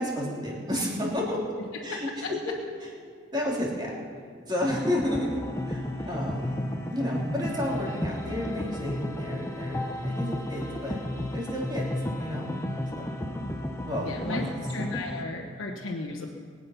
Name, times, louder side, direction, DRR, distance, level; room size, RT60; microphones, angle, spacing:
voice 1, 0.0-1.4 1.8-2.4 3.3-3.9 4.5-6.7 6.9-11.0 11.3-11.9 12.2-12.5 12.9-13.1 13.8-14.5, left 1 dB, 20° right, -4 dB, 3.2 m, -31 dB
voice 2, 1.9-2.3 6.0-6.1 13.4-13.5 14.0-16.3, left 3 dB, 75° left, -1 dB, 1.2 m, -35 dB
sound 1, 4.6-15.2, left 1 dB, 15° left, 1.0 m, -33 dB
22.5 x 8.6 x 5.8 m, 2.2 s
head